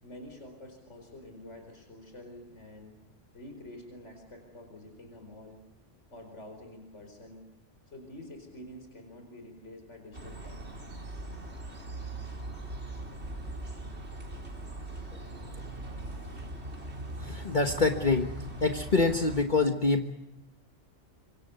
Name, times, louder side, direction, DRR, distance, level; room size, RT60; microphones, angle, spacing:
voice 1, 0.0-3.0 3.3-5.6 6.1-7.4 7.9-10.9, left 1 dB, 75° left, 5 dB, 5.0 m, -48 dB
sound 1, 10.1-19.4, right 2 dB, 65° right, 4.1 m, -40 dB
voice 2, 17.2-18.3 18.6-20.1, left 3 dB, 40° left, 4 dB, 1.5 m, -26 dB
26.0 x 25.5 x 6.9 m, 0.91 s
omnidirectional pair, 1.2 m